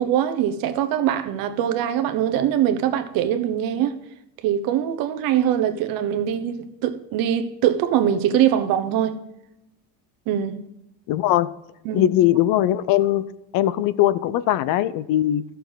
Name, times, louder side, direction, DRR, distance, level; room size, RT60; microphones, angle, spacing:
voice 1, 0.0-4.0 4.4-9.2 10.3-10.6 11.8-12.1, right 10 dB, 75° right, 1.0 m, -22 dB
voice 2, 11.1-11.5 11.9-13.3 13.5-15.4, left 13 dB, 70° left, 0.6 m, -20 dB
13.5 x 6.8 x 3.9 m
cardioid pair, 145°, 35 cm